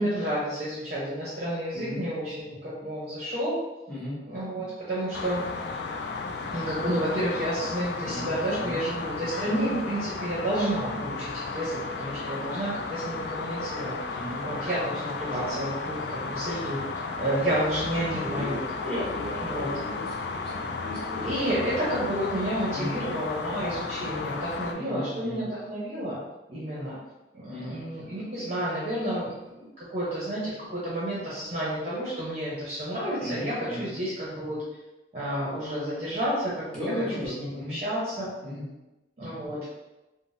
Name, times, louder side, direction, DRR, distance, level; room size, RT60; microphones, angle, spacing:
voice 1, 0.0-3.6 4.2-5.4 6.5-14.2 14.4-18.6 19.4-19.7 21.2-26.2 26.5-27.0 27.3-34.6 35.1-38.3 39.2-39.6, right 1 dB, 40° right, -8 dB, 0.7 m, -30 dB
voice 2, 1.7-2.1 3.9-4.2 8.0-8.8 14.1-14.4 18.0-21.3 22.7-23.0 24.8-25.5 27.5-27.8 33.2-33.9 36.7-37.8 38.4-38.7, left 1 dB, 5° left, -10 dB, 1.2 m, -36 dB
sound 1, 5.1-24.7, left 4 dB, 70° left, 0.3 m, -34 dB
3.6 x 2.0 x 2.6 m, 1.0 s
head